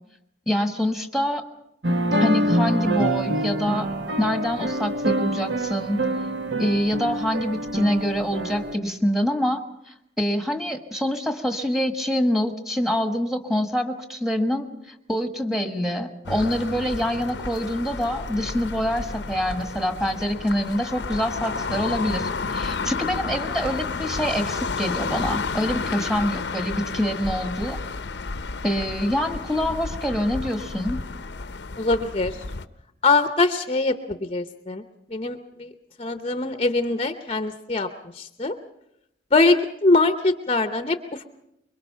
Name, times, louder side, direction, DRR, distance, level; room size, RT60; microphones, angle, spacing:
voice 1, 0.5-1.4 2.2-3.9 4.2-6.0 6.6-27.8 28.6-31.0, equal, ahead, 6 dB, 1.4 m, -25 dB
sound 1, 1.8-8.8, right 1 dB, 70° right, 1.4 m, -25 dB
sound 2, 16.3-32.7, left 4 dB, 65° left, 0.7 m, -31 dB
voice 2, 31.8-32.4 33.0-34.8 35.1-35.7 36.0-37.9 38.1-38.5 39.3-41.3, left 3 dB, 30° left, 9 dB, 0.7 m, -22 dB
24.5 x 22.5 x 5.7 m, 0.80 s
head